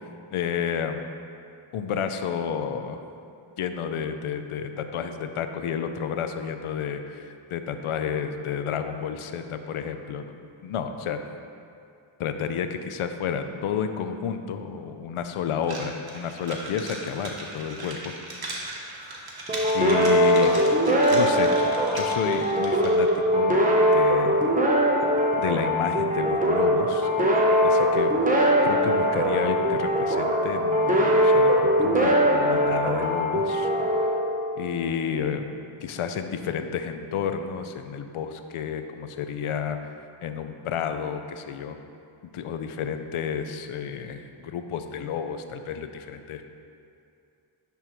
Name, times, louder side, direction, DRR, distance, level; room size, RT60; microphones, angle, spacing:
voice 1, 0.3-1.0 1.7-3.0 3.6-10.3 10.6-11.2 12.2-18.1 19.7-20.5 21.1-21.6 21.9-24.5 25.4-27.1 27.6-33.7 34.6-35.4 35.8-39.8 40.2-41.8 42.3-46.4, left 7 dB, 80° left, 8 dB, 0.6 m, -31 dB
sound 1, 15.6-23.1, right 2 dB, 45° right, 1.1 m, -38 dB
sound 2, 19.5-34.8, equal, 15° right, 0.9 m, -21 dB
11.0 x 3.6 x 3.0 m, 2.5 s
cardioid pair, 65°, 50 cm